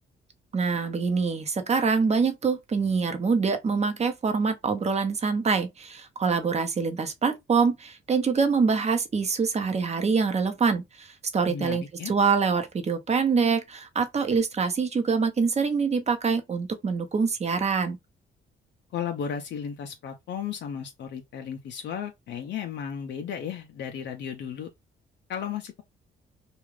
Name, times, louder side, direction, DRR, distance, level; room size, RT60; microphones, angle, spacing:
voice 1, 0.5-18.0, right 5 dB, 35° right, 0.7 m, -25 dB
voice 2, 11.5-12.1 18.9-24.7 25.3-25.8, left 8 dB, 65° left, 0.5 m, -34 dB
2.4 x 2.3 x 3.1 m
cardioid pair, 90°, 20 cm